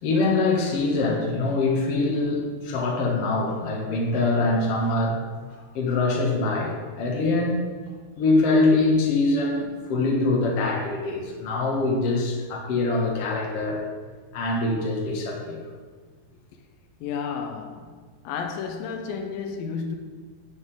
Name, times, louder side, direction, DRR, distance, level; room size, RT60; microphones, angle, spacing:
voice 1, 0.0-5.2 5.5-7.6 8.2-13.8 14.3-15.6, left 2 dB, 60° left, 1.6 m, -24 dB
voice 2, 17.0-18.0 18.2-20.0, left 6 dB, 85° left, 2.1 m, -32 dB
10.5 x 9.5 x 3.7 m
omnidirectional pair, 5.1 m